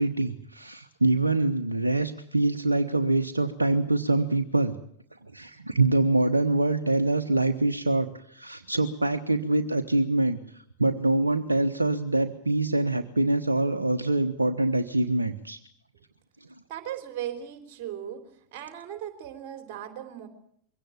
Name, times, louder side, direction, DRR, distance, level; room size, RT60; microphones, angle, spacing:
voice 1, 0.0-4.8 5.2-15.6, right 2 dB, 80° right, 7 dB, 1.2 m, -25 dB
voice 2, 16.7-18.2 18.5-20.3, right 10 dB, 45° right, 7 dB, 3.8 m, -37 dB
23.0 x 17.0 x 8.8 m, 0.66 s
figure-of-eight pair, 90°, 0 cm